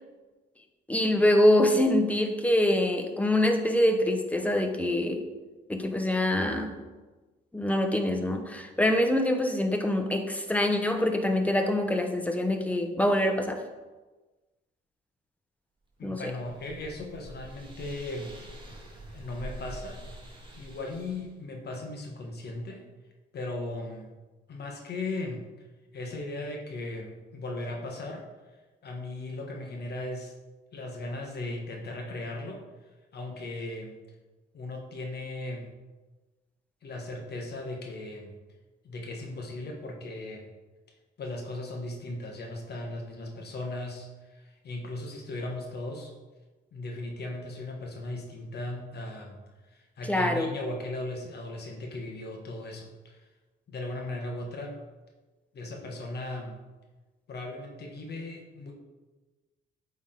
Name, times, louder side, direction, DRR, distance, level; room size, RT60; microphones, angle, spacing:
voice 1, 0.9-5.3 5.7-6.9 7.5-13.6 16.0-16.3 50.1-50.5, left 1 dB, 5° left, 5 dB, 0.8 m, -25 dB
voice 2, 16.0-18.3 19.1-20.0 20.6-22.8 23.3-24.1 24.5-25.4 25.9-28.2 28.8-30.3 30.7-32.6 33.1-34.0 34.5-35.7 36.8-38.3 38.8-40.5 41.2-46.1 46.7-49.4 49.7-53.2 53.7-54.8 55.5-56.6 57.3-58.7, left 2 dB, 55° left, 1 dB, 1.3 m, -37 dB
sound 1, 16.0-21.3, right 1 dB, 25° right, 1.6 m, -45 dB
8.6 x 3.7 x 3.8 m, 1.2 s
cardioid pair, 90°, 20 cm